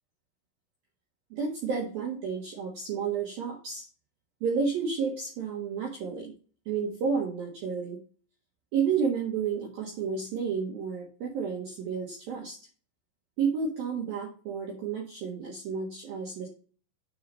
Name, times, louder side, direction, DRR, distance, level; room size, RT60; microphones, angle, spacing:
voice 1, 1.3-3.9 4.4-6.3 6.7-8.0 8.7-12.6 13.4-16.5, right 6 dB, 60° right, -1 dB, 2.7 m, -31 dB
9.6 x 4.6 x 5.3 m, 0.39 s
omnidirectional pair, 5.9 m